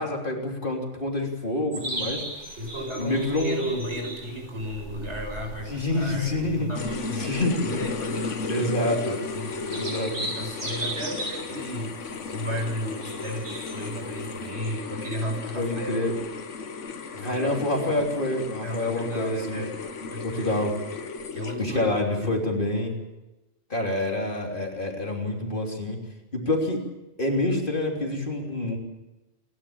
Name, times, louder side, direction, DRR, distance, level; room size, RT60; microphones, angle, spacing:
voice 1, 0.0-2.6 3.0-3.7 5.7-6.7 7.1-7.8 8.5-9.2 9.7-10.3 15.6-16.1 17.2-19.7 20.2-20.7 21.6-23.0 23.7-26.0 26.3-26.8 27.2-28.8, left 1 dB, 45° left, 1 dB, 3.6 m, -27 dB
sound 1, 1.7-14.5, right 1 dB, 85° right, 7.0 m, -39 dB
voice 2, 2.6-16.1 17.1-17.5 17.8-17.9 18.6-19.7 20.1-20.5 21.3-22.4, equal, 65° right, 2 dB, 6.6 m, -34 dB
sound 2, 6.7-21.8, left 4 dB, 80° left, 1.6 m, -35 dB
28.5 x 12.0 x 8.8 m, 1.0 s
omnidirectional pair, 1.2 m